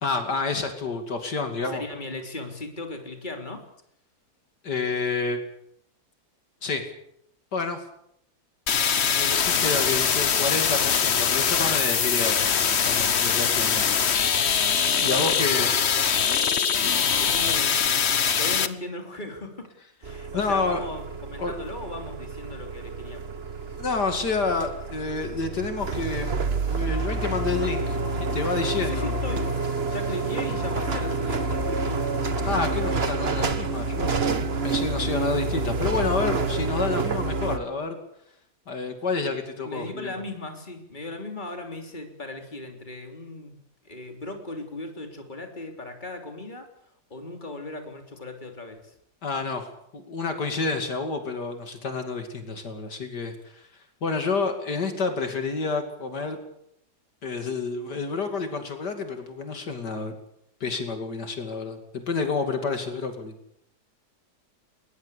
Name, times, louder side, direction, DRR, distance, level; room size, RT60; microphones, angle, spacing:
voice 1, 0.0-1.8 4.6-5.4 6.6-6.8 7.5-7.8 9.2-14.0 15.0-15.7 20.3-20.9 21.4-21.5 23.8-26.3 26.7-28.0 28.3-29.1 32.5-34.2 34.6-38.0 38.7-40.1 49.2-49.7 49.9-53.7 54.0-56.4 57.2-60.1 60.6-63.3, left 4 dB, 80° left, 6 dB, 3.2 m, -29 dB
voice 2, 1.6-3.6 15.0-15.8 16.7-17.8 18.4-19.7 20.0-23.3 23.6-23.8 28.8-29.5 29.9-32.2 39.6-43.6 43.8-46.7 47.1-48.9, left 2 dB, 25° left, 4 dB, 3.6 m, -37 dB
sound 1, 8.7-18.7, left 7 dB, 45° left, 1.2 m, -22 dB
sound 2, 20.0-37.6, right 3 dB, 40° right, 1.6 m, -28 dB
sound 3, 26.9-32.7, left 3 dB, 70° right, 6.7 m, -39 dB
21.0 x 21.0 x 8.3 m, 0.74 s
omnidirectional pair, 1.8 m